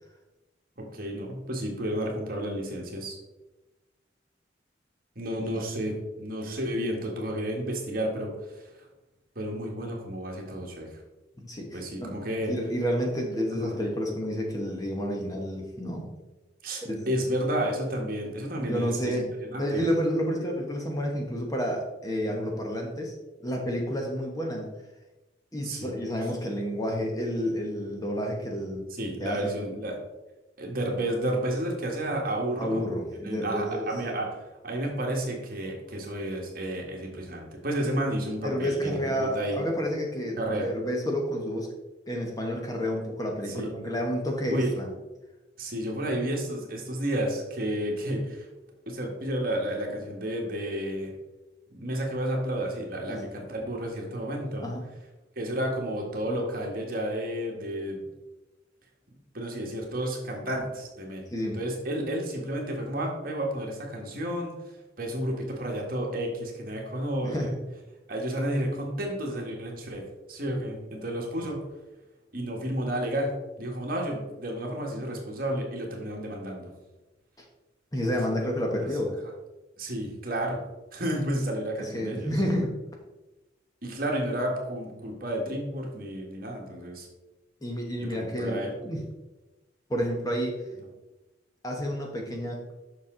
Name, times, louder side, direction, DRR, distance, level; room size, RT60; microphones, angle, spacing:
voice 1, 0.8-3.2 5.1-8.7 9.3-11.0 11.7-12.5 13.5-13.7 16.6-19.2 19.5-19.8 25.6-25.9 29.0-30.0 30.6-32.9 33.2-34.3 34.6-39.6 40.4-40.7 43.5-43.7 44.5-44.7 45.6-48.5 48.9-51.1 51.7-54.7 55.3-58.0 59.3-61.3 61.5-64.5 65.0-67.5 68.1-70.0 70.3-71.7 72.3-76.7 79.8-80.6 80.9-82.3 83.8-87.1 88.0-88.7, right 1 dB, 50° right, 0 dB, 1.6 m, -31 dB
voice 2, 11.4-12.2 12.5-16.1 16.8-17.1 18.6-19.3 19.6-23.1 23.4-24.7 25.5-28.9 29.2-29.5 32.6-33.9 38.4-41.7 42.1-44.9 53.1-53.2 54.6-54.8 61.3-61.6 67.2-67.5 77.9-79.2 81.8-82.7 87.6-89.0 89.9-90.6 91.6-92.6, equal, 20° left, 1 dB, 1.0 m, -30 dB
6.9 x 6.0 x 3.8 m, 1.1 s
head